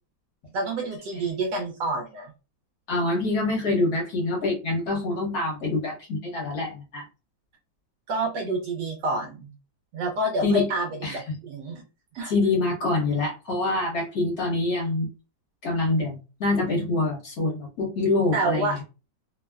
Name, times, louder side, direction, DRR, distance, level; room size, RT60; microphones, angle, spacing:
voice 1, 0.5-2.3 8.1-9.5 9.9-11.8 12.1-12.3 18.3-18.8, right 2 dB, 70° right, 2 dB, 1.1 m, -28 dB
voice 2, 2.9-7.0 10.4-10.7 11.0-11.4 12.2-15.1 15.6-18.8, left 2 dB, 60° left, -2 dB, 1.3 m, -25 dB
3.2 x 2.1 x 2.2 m, 0.31 s
omnidirectional pair, 2.2 m